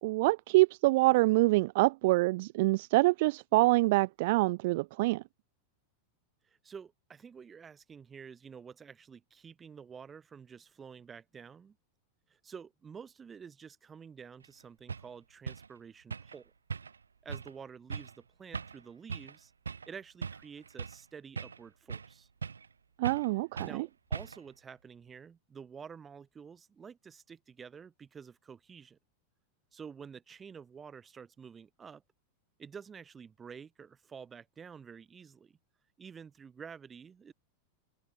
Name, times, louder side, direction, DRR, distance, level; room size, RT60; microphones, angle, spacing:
voice 1, 0.0-5.2 23.0-23.9, right 21 dB, 50° right, 0.4 m, -26 dB
voice 2, 6.4-11.8 12.3-16.5 17.2-19.5 19.9-22.3 23.6-29.0 29.7-32.0 32.6-35.6 36.0-37.3, right 6 dB, 20° right, 5.5 m, -49 dB
sound 1, 14.4-14.5 14.9-15.1 15.5-15.7 16.1-16.4 16.7-17.0 17.3-17.5 17.9-18.2 18.5-18.8 19.1-19.4 19.7-19.9 20.2-21.0 21.4-22.1 22.4-22.7 23.0-23.3 23.6-23.8 24.1-24.5, right 5 dB, 75° right, 1.5 m, -39 dB
figure-of-eight pair, 90°, 0 cm